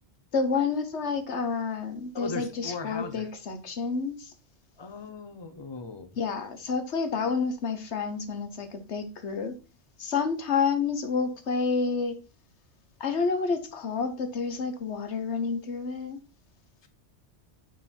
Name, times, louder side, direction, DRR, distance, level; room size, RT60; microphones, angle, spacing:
voice 1, 0.3-4.3 6.2-9.6 10.0-12.2 13.0-16.2, left 5 dB, 75° left, 1.4 m, -29 dB
voice 2, 2.1-3.3 4.8-6.2 16.8-16.9, left 4 dB, 25° left, 1.0 m, -38 dB
9.4 x 4.8 x 4.4 m
omnidirectional pair, 1.2 m